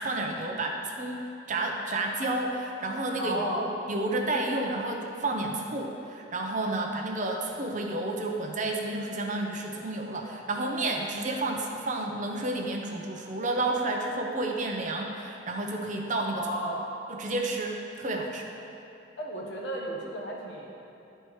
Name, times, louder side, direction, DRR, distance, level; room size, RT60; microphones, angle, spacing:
voice 1, 0.0-16.5 17.1-18.5, right 2 dB, 40° right, 1 dB, 0.7 m, -31 dB
voice 2, 3.2-3.7 16.3-16.8 19.2-20.7, right 1 dB, 65° left, -2 dB, 1.1 m, -33 dB
12.0 x 4.5 x 3.2 m, 2.8 s
head